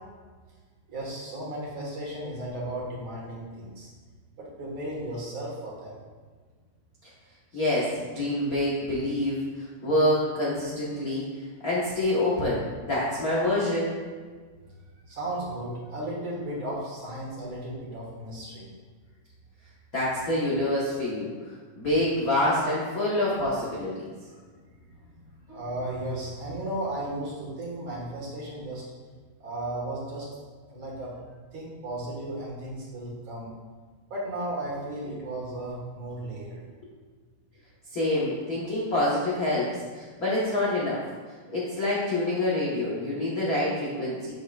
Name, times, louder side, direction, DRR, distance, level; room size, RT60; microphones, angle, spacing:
voice 1, 0.9-3.9 4.4-6.0 15.1-18.7 24.3-24.4 25.5-28.8 29.4-30.3 30.7-31.1 31.5-33.5 34.1-36.6, right 1 dB, 50° right, -5 dB, 2.1 m, -35 dB
voice 2, 7.5-9.4 9.8-11.3 11.6-13.9 19.9-21.3 21.7-24.1 37.9-41.0 41.5-44.3, left 1 dB, 55° left, -7 dB, 1.0 m, -26 dB
8.0 x 7.6 x 2.4 m, 1.5 s
omnidirectional pair, 3.3 m